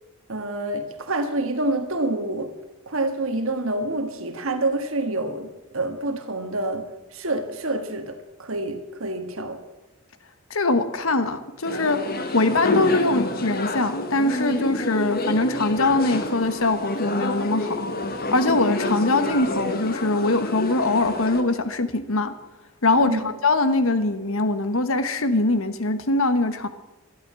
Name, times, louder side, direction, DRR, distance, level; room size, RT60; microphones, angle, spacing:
voice 1, 0.3-2.5 2.9-5.5 5.7-6.8 7.1-9.6 22.9-23.3, right 2 dB, 65° right, 6 dB, 1.5 m, -27 dB
voice 2, 10.5-12.0 12.3-17.7 18.3-22.3 22.8-26.7, left 2 dB, 70° left, 11 dB, 1.2 m, -22 dB
sound 1, 11.6-21.4, left 2 dB, 45° left, 1.3 m, -28 dB
13.0 x 12.0 x 7.5 m, 1.0 s
head